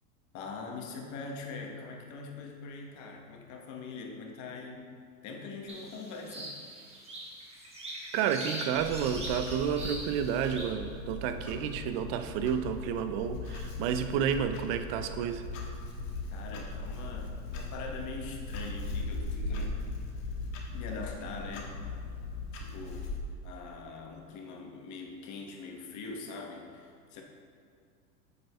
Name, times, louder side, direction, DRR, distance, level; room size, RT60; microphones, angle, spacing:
voice 1, 0.3-4.9 5.2-6.6 16.3-19.9 20.7-21.8 22.5-23.2 23.4-27.2, left 4 dB, 40° left, 1 dB, 1.1 m, -42 dB
sound 1, 5.7-10.7, right 1 dB, 15° right, 1.3 m, -42 dB
voice 2, 8.1-15.5, right 8 dB, 45° right, 9 dB, 0.5 m, -31 dB
Clock, 8.7-23.2, left 2 dB, 60° left, 1.3 m, -39 dB
7.9 x 7.6 x 2.2 m, 2.4 s
hypercardioid pair, 95°, 44 cm